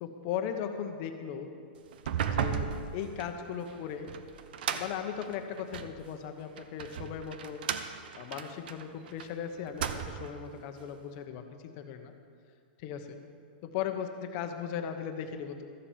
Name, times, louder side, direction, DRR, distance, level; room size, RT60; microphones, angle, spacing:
voice 1, 0.0-1.5 2.3-4.1 4.7-7.7 8.2-12.1 12.8-13.2 13.7-15.6, left 8 dB, 35° left, 6 dB, 1.0 m, -37 dB
sound 1, 1.9-6.0 6.6-9.3 9.6-10.4, right 8 dB, 60° right, 0.8 m, -35 dB
13.5 x 7.2 x 7.3 m, 2.3 s
supercardioid pair, 165°, 6 cm